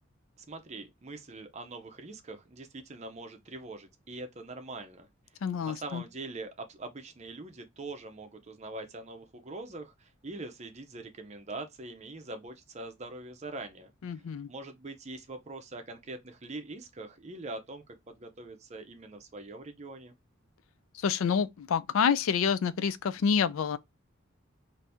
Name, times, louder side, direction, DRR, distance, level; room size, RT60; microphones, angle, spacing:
voice 1, 0.4-5.1 5.6-13.9 14.5-20.1, right 2 dB, 30° right, 0.5 m, -43 dB
voice 2, 5.4-6.0 14.0-14.5 21.0-23.8, left 6 dB, 80° left, 0.4 m, -28 dB
2.7 x 2.6 x 3.4 m
head